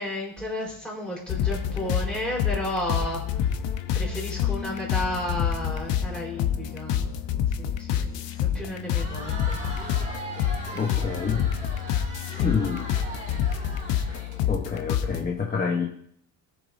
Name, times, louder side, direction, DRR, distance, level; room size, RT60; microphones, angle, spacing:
voice 1, 0.0-3.5 3.9-7.1 7.6-9.6 12.3-12.8, left 1 dB, ahead, -3 dB, 4.3 m, -33 dB
sound 1, 1.3-15.2, left 9 dB, 85° left, 1.0 m, -28 dB
Crowd, 8.8-14.8, right 1 dB, 20° right, 2.9 m, -40 dB
voice 2, 10.7-11.4 12.4-13.0 14.5-15.9, left 5 dB, 20° left, -1 dB, 1.1 m, -27 dB
20.5 x 7.0 x 2.7 m, 0.65 s
cardioid pair, 175°, 42 cm